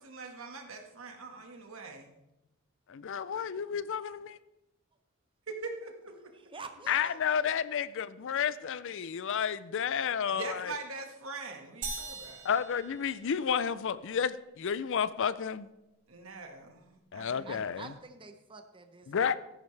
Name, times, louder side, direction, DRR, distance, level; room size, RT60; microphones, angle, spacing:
voice 1, 0.0-2.1 5.5-6.1 10.3-12.4 16.1-17.9, right 3 dB, 65° right, 3 dB, 1.7 m, -43 dB
voice 2, 2.9-4.4 6.9-10.7 12.4-15.7 17.1-17.9 19.1-19.4, left 7 dB, 60° left, 16 dB, 0.5 m, -31 dB
voice 3, 6.5-7.2 17.5-19.4, right 4 dB, 25° right, 7 dB, 0.7 m, -47 dB
sound 1, 11.8-13.7, right 4 dB, 40° right, 2.7 m, -41 dB
13.5 x 10.5 x 3.3 m, 0.93 s
head